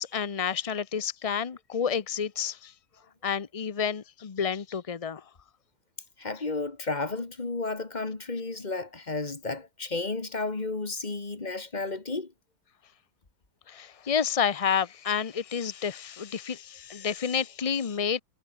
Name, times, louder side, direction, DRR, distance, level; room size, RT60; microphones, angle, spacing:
voice 1, 0.0-2.7 3.2-5.2 13.7-18.2, left 7 dB, 70° left, 0.3 m, -29 dB
voice 2, 6.2-12.3, left 3 dB, 25° left, 2.1 m, -32 dB
omnidirectional pair, 1.9 m